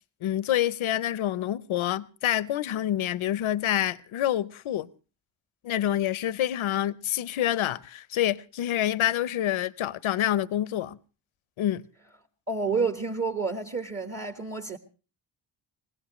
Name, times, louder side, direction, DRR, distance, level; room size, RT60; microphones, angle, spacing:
voice 1, 0.2-4.9 5.6-11.0 11.6-11.8, left 12 dB, 85° left, 0.7 m, -27 dB
voice 2, 12.5-14.8, right 4 dB, 30° right, 1.5 m, -29 dB
22.0 x 20.0 x 3.1 m
cardioid pair, 50°, 47 cm